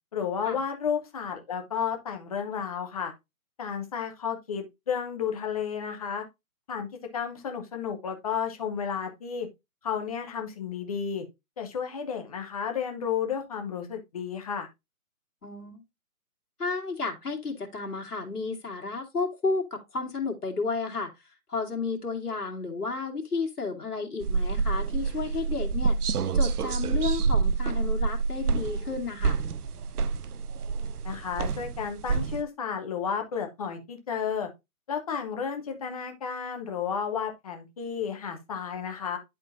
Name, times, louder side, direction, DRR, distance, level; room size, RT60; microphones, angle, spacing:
voice 1, 0.1-3.1 3.6-6.2 6.7-6.9 7.1-9.5 9.8-11.2 11.6-14.7 31.0-34.5 34.9-39.2, left 7 dB, 25° left, 0.9 m, -32 dB
voice 2, 15.4-15.8 16.6-21.1 21.5-26.0 26.3-29.4, left 4 dB, 90° left, 2.3 m, -32 dB
sound 1, 24.2-32.4, right 4 dB, 90° right, 0.7 m, -27 dB
11.0 x 3.8 x 2.6 m
hypercardioid pair, 160°, 44 cm